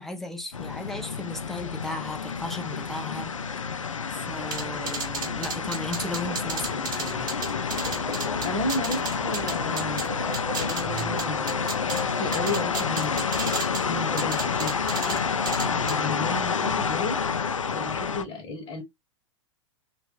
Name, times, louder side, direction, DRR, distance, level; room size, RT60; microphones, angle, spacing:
voice 1, 0.0-3.4 4.3-7.3 13.9-14.3, left 2 dB, ahead, 0.6 m, -36 dB
sound 1, 0.5-18.2, left 5 dB, 80° left, 0.4 m, -29 dB
sound 2, 4.4-12.7, right 4 dB, 90° right, 0.8 m, -41 dB
sound 3, 4.5-10.1 10.3-12.0 12.3-13.8 14.2-15.2 15.4-15.9, right 4 dB, 25° right, 1.2 m, -33 dB
voice 2, 8.4-10.0 10.6-11.6 11.9-13.3 14.1-18.8, left 2 dB, 30° left, 0.9 m, -34 dB
3.4 x 2.3 x 3.0 m
figure-of-eight pair, 95°, 16 cm